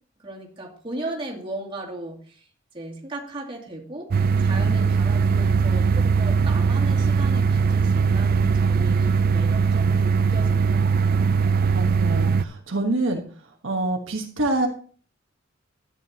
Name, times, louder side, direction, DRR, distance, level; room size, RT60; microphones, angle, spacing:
voice 1, 0.2-2.5 2.7-11.5, right 1 dB, 25° right, -2 dB, 2.5 m, -37 dB
sound 1, 4.1-12.4, right 5 dB, 50° right, 0.4 m, -20 dB
voice 2, 11.7-13.2 13.6-14.7, right 2 dB, 70° right, 2 dB, 1.3 m, -25 dB
12.5 x 9.0 x 2.9 m, 0.43 s
head